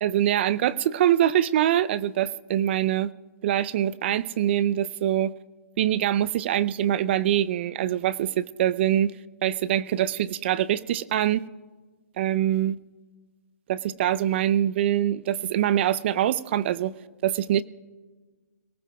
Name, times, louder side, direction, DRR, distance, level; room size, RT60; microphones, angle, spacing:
voice 1, 0.0-3.1 3.4-5.3 5.8-9.1 9.4-11.4 12.2-12.8 13.7-16.9 17.2-17.6, right 11 dB, 45° right, 17 dB, 0.5 m, -24 dB
27.0 x 18.5 x 2.3 m, 1.4 s
hypercardioid pair, 145°, 9 cm